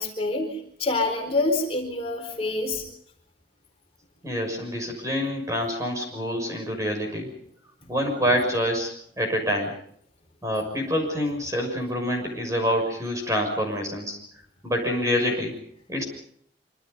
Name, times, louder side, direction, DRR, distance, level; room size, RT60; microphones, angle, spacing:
voice 1, 0.0-2.8 7.8-7.9, left 2 dB, 30° left, 3 dB, 4.3 m, -27 dB
voice 2, 4.2-7.3 7.9-9.7 10.4-14.2 14.6-15.5 15.9-16.0, equal, 15° right, 3 dB, 6.4 m, -26 dB
26.0 x 26.0 x 5.4 m, 0.66 s
head